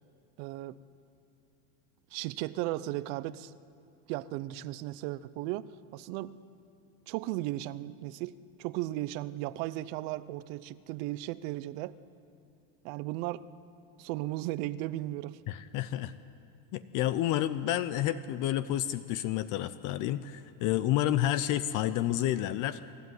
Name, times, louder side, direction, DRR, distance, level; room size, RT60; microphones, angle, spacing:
voice 1, 0.4-0.8 2.1-3.5 4.1-6.4 7.1-8.3 8.6-11.9 12.8-13.4 14.0-15.4, right 16 dB, 60° right, 17 dB, 0.8 m, -36 dB
voice 2, 15.5-16.1 16.7-22.9, left 13 dB, 45° left, 13 dB, 0.6 m, -30 dB
24.0 x 13.0 x 9.6 m, 2.5 s
supercardioid pair, 130°, 43 cm